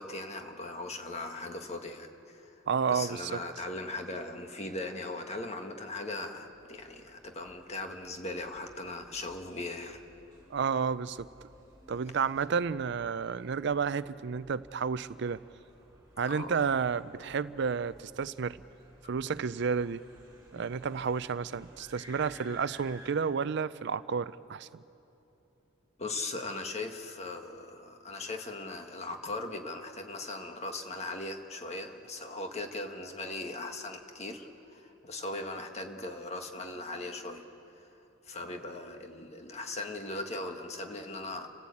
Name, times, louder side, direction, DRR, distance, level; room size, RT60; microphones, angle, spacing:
voice 1, 0.0-2.6 2.9-10.0 16.2-16.7 26.0-37.4 38.3-41.5, left 2 dB, 35° left, 5 dB, 1.5 m, -39 dB
voice 2, 2.7-3.4 10.5-11.3 11.9-15.4 16.2-18.6 19.1-20.0 20.5-24.7, right 6 dB, 60° right, 16 dB, 0.4 m, -31 dB
sound 1, 6.5-23.1, right 1 dB, 15° right, 4.3 m, -57 dB
30.0 x 14.5 x 8.5 m, 3.0 s
head